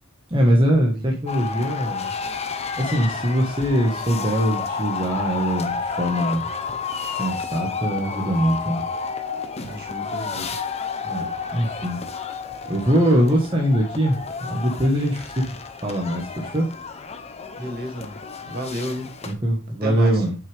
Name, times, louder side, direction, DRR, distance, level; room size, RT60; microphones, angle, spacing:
voice 1, 0.3-2.1 2.8-6.5 7.1-8.8 11.0-12.0 12.7-15.5 15.8-16.7 19.2-20.4, equal, 25° right, -1 dB, 1.6 m, -22 dB
sound 1, 1.3-19.3, left 5 dB, 30° left, 0.9 m, -31 dB
voice 2, 9.7-10.6 17.6-18.2 18.4-19.1 19.8-20.2, equal, 50° right, 1 dB, 2.7 m, -32 dB
8.8 x 6.1 x 3.5 m, 0.32 s
head